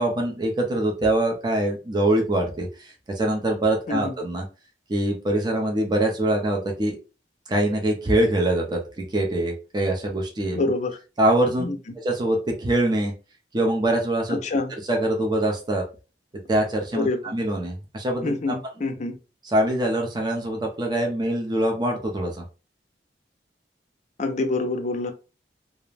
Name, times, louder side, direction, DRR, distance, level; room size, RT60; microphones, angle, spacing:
voice 1, 0.0-4.4 4.9-7.0 7.5-10.6 11.2-11.7 12.0-13.1 13.5-14.4 14.9-15.8 16.5-18.5 19.4-22.4, right 1 dB, 25° right, 0.5 m, -24 dB
voice 2, 10.5-11.0 11.6-11.8 14.4-14.7 16.9-17.3 18.2-19.2 24.2-25.1, left 3 dB, 45° left, 0.5 m, -26 dB
2.4 x 2.1 x 3.1 m
head